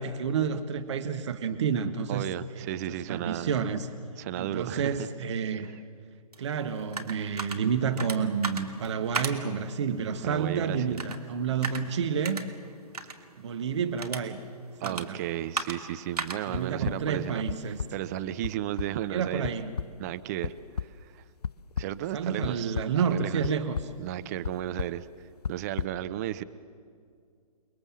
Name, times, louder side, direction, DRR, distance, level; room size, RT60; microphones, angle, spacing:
voice 1, 0.0-2.2 2.6-2.7 3.1-3.9 4.4-5.7 6.4-12.4 13.4-14.4 14.8-15.2 16.5-17.8 19.1-19.7 22.1-23.9, right 6 dB, 45° right, 7 dB, 1.4 m, -29 dB
voice 2, 2.1-3.5 4.2-5.1 5.6-5.8 10.2-11.1 14.8-17.4 17.9-19.5 20.0-21.2 21.8-23.5 24.0-25.1 25.5-26.4, right 12 dB, 25° right, 12 dB, 0.7 m, -34 dB
sound 1, 6.3-18.0, right 3 dB, 75° right, 2.5 m, -39 dB
sound 2, 16.5-16.9 17.5-17.9 18.4-18.5 18.8-18.9 19.4-19.5 19.8-19.9 20.4-20.9 21.4-21.8 22.4-22.9 23.4-23.8 24.4-24.5 24.8-24.9 25.4-25.8, left 6 dB, 80° left, 0.6 m, -31 dB
29.0 x 21.5 x 7.4 m, 2.2 s
figure-of-eight pair, 130°, 20 cm